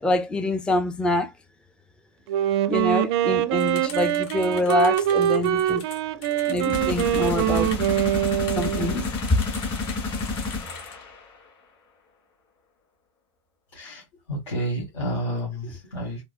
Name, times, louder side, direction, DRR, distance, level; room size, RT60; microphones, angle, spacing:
voice 1, 0.0-1.3 2.7-5.8 6.5-7.7 8.6-9.1, left 2 dB, 5° left, 0.4 m, -25 dB
Wind instrument woodwind instrument, 2.3-9.0, right 12 dB, 65° right, 0.4 m, -24 dB
sound 1, 3.6-10.9, left 5 dB, 55° left, 1.2 m, -43 dB
sound 2, 6.7-11.5, left 3 dB, 35° left, 1.8 m, -30 dB
voice 2, 13.7-16.2, right 1 dB, 85° left, 1.6 m, -30 dB
3.5 x 2.0 x 2.5 m
hypercardioid pair, 110°, 15 cm